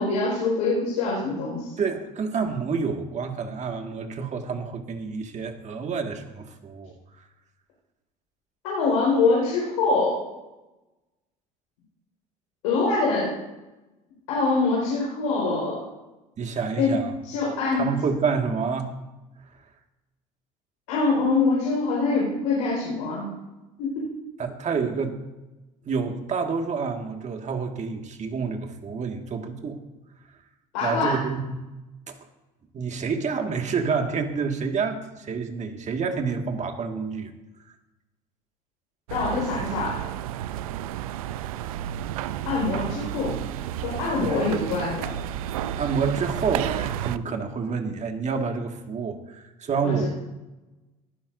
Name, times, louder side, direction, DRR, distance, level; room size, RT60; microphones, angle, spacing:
voice 1, 0.0-1.8 8.6-10.2 12.6-13.4 14.3-15.8 16.8-16.9 17.2-17.9 20.9-23.3 23.8-24.0 30.7-31.2 39.1-40.0 42.5-43.3 43.8-45.1 49.8-50.1, left 3 dB, 85° left, -5 dB, 4.7 m, -24 dB
voice 2, 1.8-6.9 16.4-17.1 17.7-18.9 24.4-25.2 25.9-29.8 30.8-31.4 32.1-32.2 32.7-37.3 44.2-44.5 45.8-50.1, right 5 dB, 40° right, 4 dB, 1.9 m, -28 dB
sound 1, 39.1-47.2, right 11 dB, 85° right, 0.5 m, -32 dB
19.0 x 12.0 x 2.7 m, 1.1 s
hypercardioid pair, 75°, 18 cm